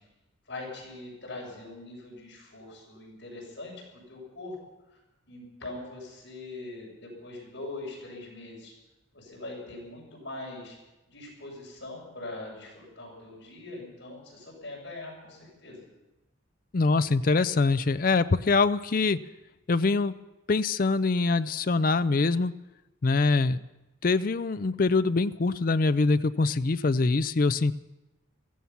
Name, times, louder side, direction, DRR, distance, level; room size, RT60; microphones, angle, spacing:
voice 1, 0.5-4.6 4.9-5.0 5.3-8.7 9.1-10.8 11.1-15.8, left 2 dB, 60° left, -3 dB, 7.1 m, -42 dB
voice 2, 16.7-19.2 19.7-20.2 20.5-22.5 23.0-23.6 24.0-27.7, left 3 dB, 45° left, 13 dB, 0.4 m, -24 dB
16.5 x 14.5 x 5.8 m, 1.0 s
head